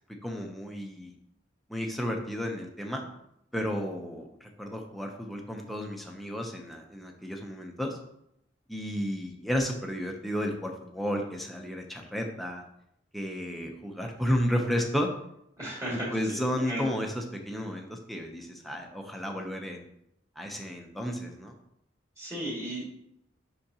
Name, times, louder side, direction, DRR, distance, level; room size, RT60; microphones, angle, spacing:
voice 1, 0.2-1.1 1.7-3.0 3.5-8.0 8.7-12.6 13.1-15.1 15.9-19.9 20.4-21.5, equal, ahead, 1 dB, 0.8 m, -32 dB
voice 2, 15.6-16.4 16.6-16.8 22.2-22.8, right 1 dB, 15° right, -6 dB, 2.4 m, -35 dB
10.0 x 3.9 x 2.9 m, 0.77 s
head